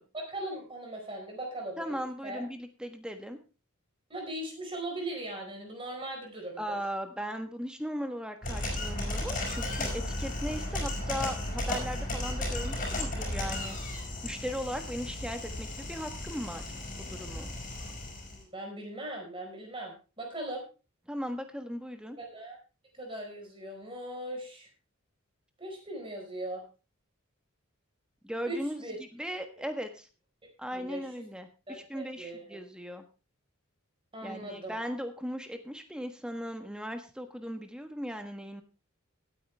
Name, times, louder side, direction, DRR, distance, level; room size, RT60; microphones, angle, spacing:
voice 1, 0.1-2.4 4.1-6.8 18.3-20.6 22.2-22.6 22.9-24.7 25.6-26.6 28.4-29.0 29.5-29.7 30.7-31.2 31.7-32.6 34.1-34.7, right 1 dB, 25° right, 1 dB, 4.8 m, -39 dB
voice 2, 1.8-3.4 6.6-13.8 14.2-16.6 17.0-17.5 21.1-22.2 28.2-28.9 29.1-30.1 30.6-33.0 34.2-38.6, equal, 5° right, 7 dB, 1.3 m, -38 dB
sound 1, 8.4-18.4, left 1 dB, 40° left, 5.7 m, -35 dB
17.5 x 9.2 x 3.4 m, 0.33 s
head